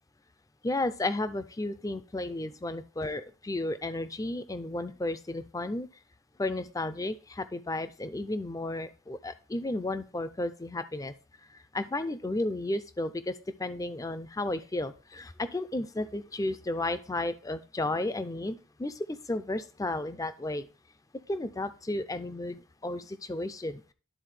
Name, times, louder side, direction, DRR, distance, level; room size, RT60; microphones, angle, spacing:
voice 1, 0.6-5.9 6.4-11.1 11.5-13.3 13.6-20.7 21.3-23.8, left 2 dB, 15° left, 11 dB, 0.4 m, -33 dB
12.0 x 4.1 x 3.2 m, 0.36 s
head